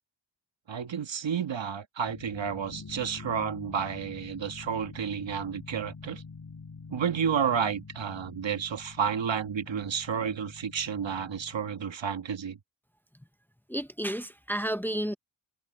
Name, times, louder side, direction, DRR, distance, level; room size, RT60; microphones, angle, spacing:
voice 1, 0.7-6.2 6.9-12.6, right 7 dB, 85° right, 1.7 m, -31 dB
sound 1, 2.0-11.9, left 4 dB, 50° left, 5.7 m, -47 dB
voice 2, 13.7-15.2, right 1 dB, 5° left, 0.7 m, -31 dB
wide cardioid pair, 80°, 44 cm